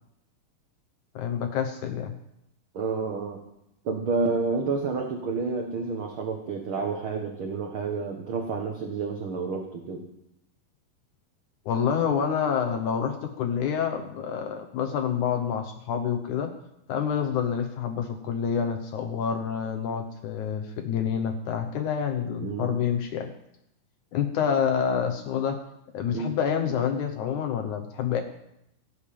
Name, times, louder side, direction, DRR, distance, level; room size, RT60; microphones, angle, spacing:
voice 1, 1.2-2.2 11.7-16.5 16.9-23.3 24.1-25.6 25.9-28.2, left 7 dB, 70° left, 5 dB, 1.9 m, -27 dB
voice 2, 2.7-3.4 3.8-10.0 22.4-22.8 26.1-26.4, right 4 dB, 60° right, 3 dB, 1.3 m, -29 dB
17.5 x 7.4 x 8.6 m, 0.82 s
omnidirectional pair, 4.4 m